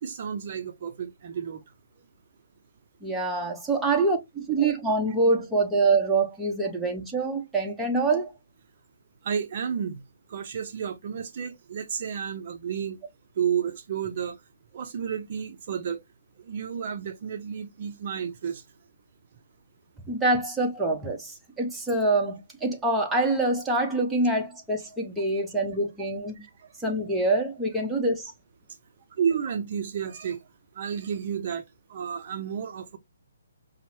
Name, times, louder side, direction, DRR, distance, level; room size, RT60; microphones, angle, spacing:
voice 1, 0.0-1.6 9.2-10.0 10.3-13.0 13.4-14.4 14.7-16.0 16.4-18.6 26.4-26.7 29.2-30.4 30.7-31.6 31.9-33.0, right 7 dB, 45° right, 0.5 m, -31 dB
voice 2, 3.0-8.3 20.1-26.4 26.8-28.3, right 2 dB, 5° right, 0.8 m, -25 dB
5.3 x 2.0 x 3.0 m
hypercardioid pair, 145°, 0 cm